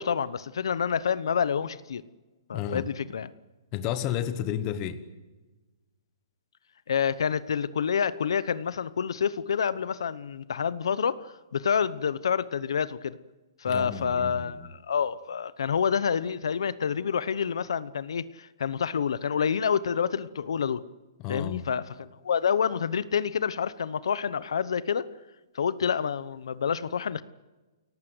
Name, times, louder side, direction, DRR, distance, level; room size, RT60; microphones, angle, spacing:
voice 1, 0.0-2.0 2.5-3.3 6.9-13.2 13.6-20.8 21.3-25.1 25.5-27.2, left 7 dB, 75° left, 0.9 m, -28 dB
voice 2, 2.5-2.9 3.7-5.0 13.7-14.7 21.2-21.7, left 9 dB, 20° left, 1.2 m, -32 dB
28.5 x 18.0 x 7.9 m
hypercardioid pair, 175°, 3 cm